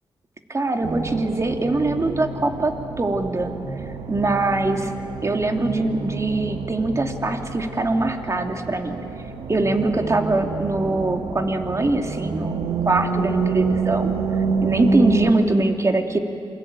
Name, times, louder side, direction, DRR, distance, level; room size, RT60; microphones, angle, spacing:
voice 1, 0.5-3.5 3.8-4.9 5.2-9.0 9.5-14.1 14.6-16.2, right 2 dB, 30° right, 5 dB, 2.8 m, -22 dB
sound 1, 0.8-15.3, right 4 dB, 85° right, 1.7 m, -27 dB
27.5 x 23.0 x 9.1 m, 2.9 s
cardioid pair, 70°, 9 cm